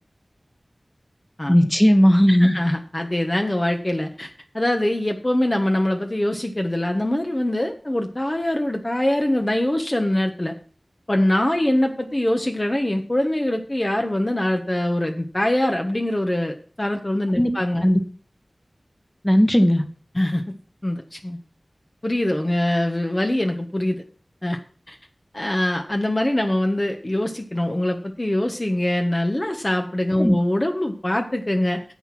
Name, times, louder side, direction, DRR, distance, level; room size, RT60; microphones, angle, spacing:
voice 1, 1.5-2.6 17.3-17.5 17.8-18.0 19.2-19.8 30.2-30.3, equal, 15° left, 7 dB, 1.6 m, -16 dB
voice 2, 2.3-10.5 11.1-17.8 20.1-20.4 20.8-21.4 22.0-24.0 24.4-24.6 24.9-25.0 25.3-31.8, left 1 dB, 30° left, 4 dB, 1.3 m, -23 dB
10.5 x 8.0 x 6.0 m, 0.42 s
wide cardioid pair, 55°, 0 cm